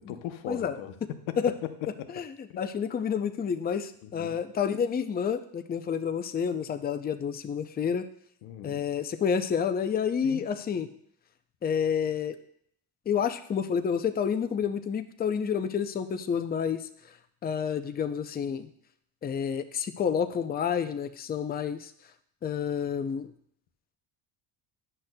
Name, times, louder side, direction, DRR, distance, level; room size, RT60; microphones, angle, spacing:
voice 1, 0.0-2.1 2.5-2.6 4.0-4.4 8.4-8.8 10.2-10.5, left 11 dB, 90° left, 9 dB, 0.8 m, -39 dB
voice 2, 2.6-8.1 8.6-10.9 11.6-12.4 13.1-16.9 17.4-18.7 19.2-21.9 22.4-23.3, left 7 dB, 20° left, 9 dB, 0.4 m, -29 dB
10.0 x 6.2 x 2.2 m, 0.67 s
cardioid pair, 95°, 47 cm